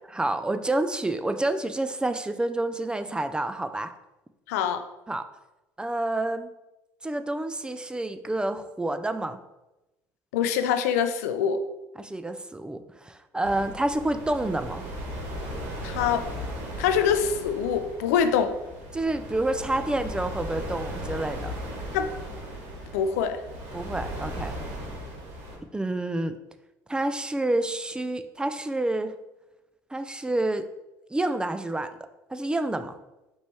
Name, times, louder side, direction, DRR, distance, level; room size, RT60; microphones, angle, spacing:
voice 1, 0.1-3.9 5.1-5.2 5.8-6.5 7.0-9.4 12.0-14.8 18.9-21.5 23.7-24.6 25.7-26.4 26.9-29.1 29.9-30.7 31.1-31.9 32.3-33.0, right 2 dB, 10° right, 10 dB, 0.3 m, -28 dB
voice 2, 4.5-4.8 10.3-11.6 15.8-16.3 16.8-18.5 21.9-22.1 22.9-23.4, left 7 dB, 90° left, 9 dB, 0.4 m, -24 dB
sound 1, 13.4-25.6, equal, 80° right, 1.5 m, -37 dB
5.1 x 3.1 x 3.3 m, 0.99 s
supercardioid pair, 80°, 8 cm